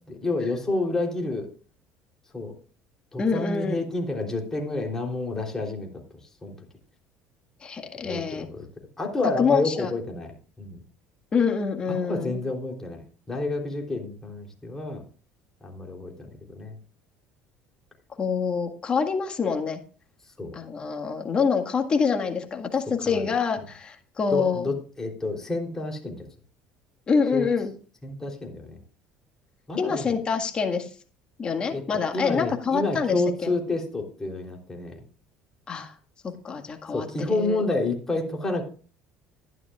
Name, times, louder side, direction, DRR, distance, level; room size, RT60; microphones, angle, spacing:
voice 1, 0.1-1.5 2.3-2.5 3.1-5.9 6.4-6.6 8.0-8.7 9.0-10.8 11.9-13.0 13.3-15.0 15.6-16.8 20.4-20.6 23.0-23.3 24.3-26.3 27.3-27.5 28.0-28.8 29.7-30.1 31.7-31.8 32.1-35.0 36.9-38.7, left 2 dB, 15° left, 0 dB, 3.4 m, -29 dB
voice 2, 3.2-3.8 7.6-8.5 9.4-9.9 11.3-12.3 18.2-19.8 20.5-24.7 27.1-27.7 29.8-30.9 31.4-33.1 33.4-33.5 35.7-35.9 36.2-37.6, left 5 dB, 30° left, 4 dB, 1.8 m, -26 dB
13.0 x 11.0 x 2.4 m, 0.39 s
supercardioid pair, 105°, 3 cm